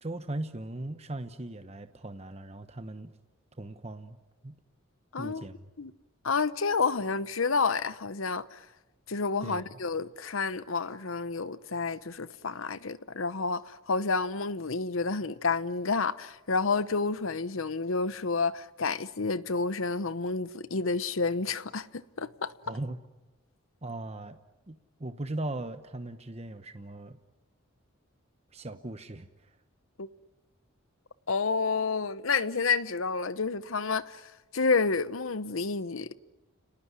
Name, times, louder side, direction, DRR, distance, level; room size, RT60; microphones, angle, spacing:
voice 1, 0.0-3.1 3.6-4.2 4.4-4.5 5.2-5.7 9.4-9.8 22.7-23.0 23.8-24.4 24.7-27.2 28.5-29.3, right 2 dB, 30° right, 1.0 m, -38 dB
voice 2, 5.1-5.4 5.8-5.9 6.2-8.6 9.1-22.5 30.0-30.1 31.3-36.1, left 4 dB, 75° left, 0.9 m, -30 dB
30.0 x 19.0 x 9.8 m
head